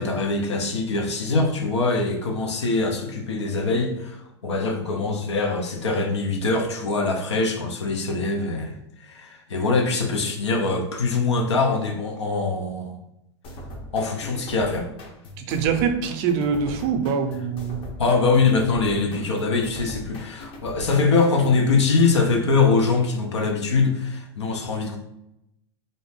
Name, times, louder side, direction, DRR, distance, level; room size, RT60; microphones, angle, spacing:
voice 1, 0.0-13.0 13.9-14.9 18.0-25.0, left 3 dB, 90° left, 2 dB, 0.6 m, -23 dB
sound 1, 13.4-21.7, left 1 dB, 40° left, 0.6 m, -40 dB
voice 2, 15.4-17.8, right 6 dB, 50° right, 6 dB, 0.5 m, -24 dB
2.6 x 2.1 x 3.1 m, 0.85 s
hypercardioid pair, 105°, 14 cm